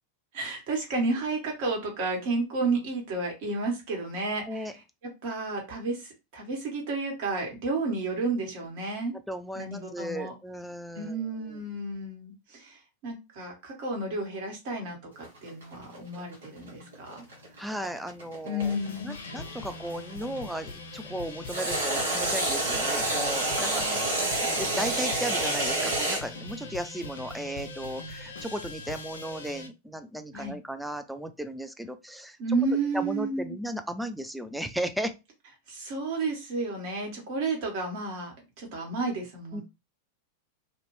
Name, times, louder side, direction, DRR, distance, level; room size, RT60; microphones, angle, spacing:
voice 1, 0.3-4.7 5.2-9.1 9.5-10.3 10.9-15.0 15.4-17.2 18.4-19.2 23.6-24.5 30.3-30.6 32.4-33.5 35.7-39.6, right 3 dB, 45° right, 1.4 m, -32 dB
voice 2, 9.3-11.2 11.5-11.6 17.6-18.8 19.0-23.8 24.4-32.4 32.9-35.1 39.5-39.6, equal, ahead, 0.4 m, -35 dB
sound 1, 15.2-20.4 21.5-26.2, right 2 dB, 65° right, 1.3 m, -28 dB
sound 2, 18.6-29.7, left 3 dB, 60° left, 0.6 m, -41 dB
2.7 x 2.5 x 3.2 m
figure-of-eight pair, 90°, 0 cm